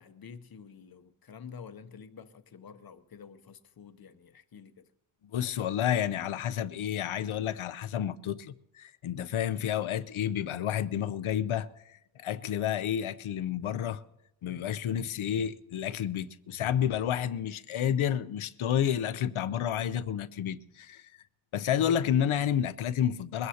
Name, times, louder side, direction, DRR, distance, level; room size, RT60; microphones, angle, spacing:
voice 1, 0.0-4.9, left 6 dB, 50° left, 0.8 m, -49 dB
voice 2, 5.3-14.0 14.4-21.1 21.5-23.5, left 9 dB, 80° left, 0.7 m, -30 dB
22.0 x 16.0 x 2.8 m
wide cardioid pair, 120°, 48 cm